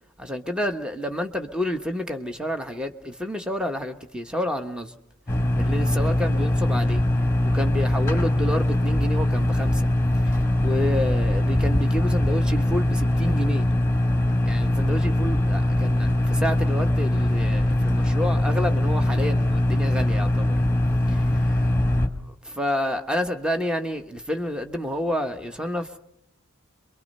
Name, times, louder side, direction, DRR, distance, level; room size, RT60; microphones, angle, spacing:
voice 1, 0.2-5.0 5.6-7.0 7.4-9.9 10.2-13.7 14.5-20.6 21.1-21.7 22.3-26.0, equal, 5° right, 1.1 m, -29 dB
sound 1, 5.3-22.1, left 1 dB, 10° left, 1.6 m, -22 dB
27.0 x 23.5 x 5.5 m
head